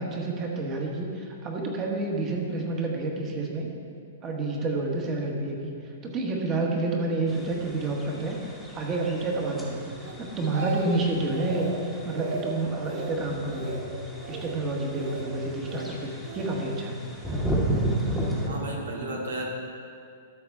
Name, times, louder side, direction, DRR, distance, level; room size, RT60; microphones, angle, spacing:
voice 1, 0.0-3.7 4.2-8.4 8.7-13.8 14.3-17.0, right 2 dB, 25° right, 0 dB, 1.3 m, -29 dB
sound 1, 7.3-18.5, right 1 dB, ahead, 1.2 m, -34 dB
Speech, 10.0-11.0 11.3-11.7 12.1-12.5 12.8-13.1 13.5-13.8 14.2-14.5 14.9-15.3 15.7-16.5 17.2-17.5, right 4 dB, 70° right, 1.5 m, -37 dB
voice 2, 18.4-19.5, right 1 dB, 90° right, -2 dB, 2.3 m, -33 dB
12.5 x 6.5 x 3.6 m, 2.4 s
hypercardioid pair, 155°, 0 cm